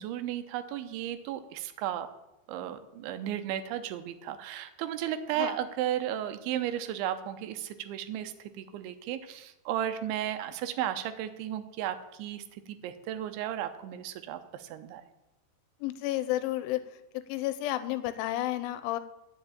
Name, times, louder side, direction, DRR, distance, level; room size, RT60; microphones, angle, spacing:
voice 1, 0.0-2.1 2.5-15.0, right 11 dB, 90° right, 10 dB, 3.1 m, -34 dB
voice 2, 15.8-16.8 17.1-19.0, left 15 dB, 90° left, 12 dB, 3.2 m, -31 dB
10.5 x 7.2 x 8.6 m, 0.92 s
omnidirectional pair, 5.4 m